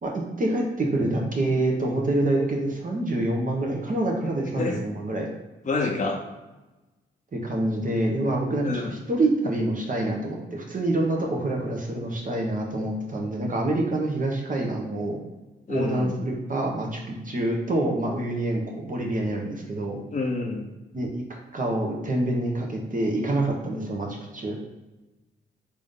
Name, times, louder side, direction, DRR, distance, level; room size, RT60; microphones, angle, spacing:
voice 1, 0.0-5.3 7.3-15.2 15.7-20.0 20.9-24.6, right 1 dB, 40° right, 0 dB, 1.0 m, -26 dB
voice 2, 5.7-6.2 8.6-8.9 15.7-16.1 20.1-20.7, left 3 dB, 35° left, 0 dB, 0.7 m, -27 dB
3.3 x 2.7 x 3.7 m, 1.1 s
supercardioid pair, 50°, 21 cm